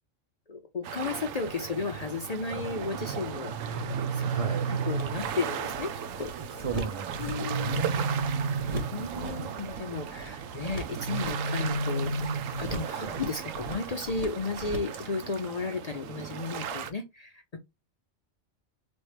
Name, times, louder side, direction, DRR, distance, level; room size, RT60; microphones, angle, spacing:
voice 1, 0.5-4.3 4.9-5.9 6.2-6.3 7.2-7.8 8.2-8.5 8.7-12.1 12.6-17.6, left 4 dB, 50° left, 0.4 m, -34 dB
sound 1, 0.8-16.9, right 8 dB, 90° right, 1.0 m, -37 dB
sound 2, 3.5-5.4 7.2-9.1 10.9-12.8, right 3 dB, 50° right, 1.5 m, -31 dB
voice 2, 4.2-4.8 6.3-8.1 9.0-9.8 13.0-13.2, right 5 dB, 70° right, 0.3 m, -37 dB
sound 3, 5.0-15.0, right 1 dB, 30° right, 0.9 m, -43 dB
4.3 x 3.1 x 3.2 m
omnidirectional pair, 1.3 m